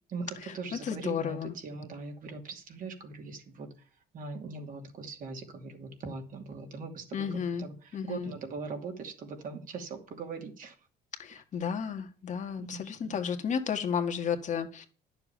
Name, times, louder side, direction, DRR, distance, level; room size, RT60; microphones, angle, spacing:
voice 1, 0.1-3.7 4.1-7.7 8.0-10.7 12.7-13.2, right 4 dB, 55° right, 2.6 m, -40 dB
voice 2, 0.8-1.6 7.1-7.7 7.9-8.3 11.2-14.9, left 7 dB, 45° left, 1.8 m, -32 dB
10.5 x 7.1 x 7.0 m
cardioid pair, 110°, 17 cm